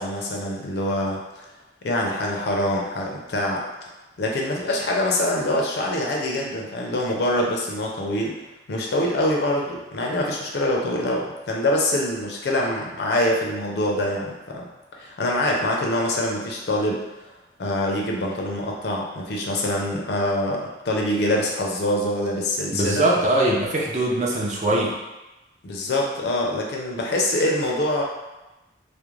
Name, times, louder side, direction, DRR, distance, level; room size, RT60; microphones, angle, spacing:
voice 1, 0.0-1.5 1.8-3.6 4.2-8.4 8.7-14.7 15.0-17.0 17.6-23.0 25.6-28.0, left 1 dB, 65° left, -1 dB, 0.5 m, -24 dB
voice 2, 22.7-25.0, right 1 dB, 40° right, -3 dB, 0.4 m, -21 dB
2.4 x 2.1 x 3.0 m, 1.0 s
head